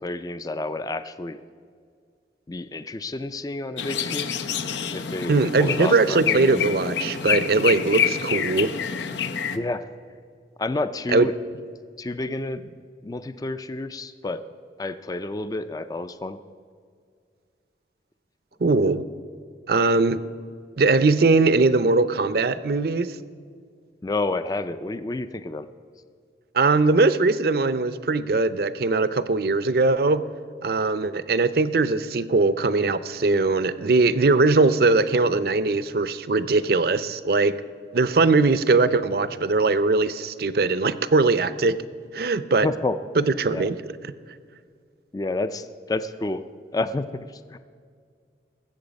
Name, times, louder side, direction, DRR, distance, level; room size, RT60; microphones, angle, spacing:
voice 1, 0.0-1.4 2.5-4.3 4.9-6.4 9.5-9.8 10.6-11.3 12.0-12.6 13.0-14.4 14.8-16.4 24.0-25.7 42.6-43.0 43.5-43.7 45.1-46.4 46.7-47.6, left 2 dB, 20° left, 11 dB, 0.4 m, -29 dB
sound 1, 3.8-9.6, left 7 dB, 90° left, 0.7 m, -27 dB
voice 2, 5.3-8.7 11.1-11.3 18.6-19.0 19.7-20.2 20.8-23.1 26.5-30.2 30.6-37.6 37.9-41.8 42.1-42.7 43.2-43.8 44.0-44.1, right 3 dB, 60° right, 14 dB, 0.5 m, -20 dB
20.5 x 8.1 x 5.2 m, 2.1 s
head